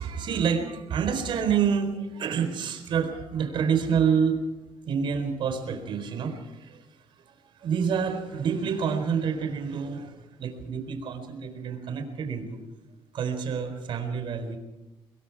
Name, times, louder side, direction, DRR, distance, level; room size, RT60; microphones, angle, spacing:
voice 1, 0.0-4.4 4.8-12.6 13.1-14.6, right 7 dB, 60° right, 8 dB, 4.3 m, -28 dB
24.5 x 22.0 x 4.8 m, 1.1 s
cardioid pair, 130°, 9 cm